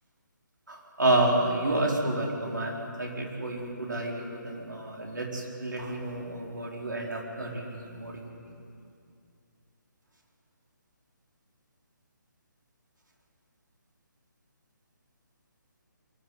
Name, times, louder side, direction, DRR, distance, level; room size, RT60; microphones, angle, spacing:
voice 1, 0.7-8.2, right 1 dB, 70° right, -1 dB, 4.5 m, -29 dB
22.5 x 13.5 x 9.5 m, 2.4 s
figure-of-eight pair, 145°, 11 cm